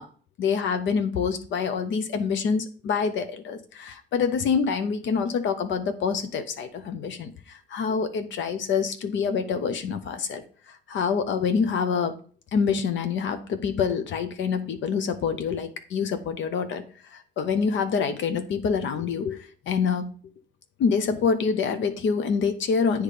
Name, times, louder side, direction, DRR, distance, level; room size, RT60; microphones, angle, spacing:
voice 1, 0.4-7.3 7.7-10.4 10.9-12.1 12.5-16.8 17.4-20.1 20.8-23.0, left 6 dB, 70° left, 9 dB, 0.8 m, -26 dB
8.3 x 3.2 x 5.0 m, 0.42 s
cardioid pair, 90°, 20 cm